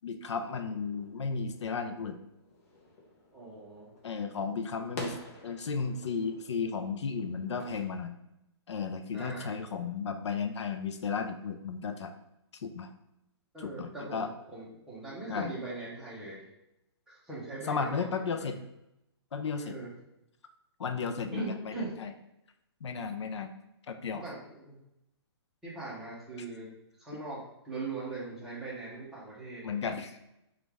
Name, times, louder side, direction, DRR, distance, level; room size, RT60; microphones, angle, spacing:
voice 1, 0.0-2.2 4.0-5.2 5.4-8.1 8.7-12.1 12.6-12.9 13.6-14.3 15.3-15.5 17.7-18.6 19.3-19.8 20.8-22.1 22.8-23.5 23.9-24.3 29.6-30.2, left 5 dB, 85° left, 7 dB, 0.5 m, -34 dB
sound 1, 0.7-7.8, left 1 dB, 30° left, 0.7 m, -48 dB
voice 2, 3.3-3.9 9.1-9.5 13.5-16.4 17.1-18.5 19.5-19.9 21.3-21.9 24.1-24.8 25.6-26.7 27.0-27.4 27.6-29.6, right 3 dB, 5° right, -8 dB, 0.8 m, -41 dB
5.2 x 2.4 x 3.3 m, 0.87 s
hypercardioid pair, 165°, 14 cm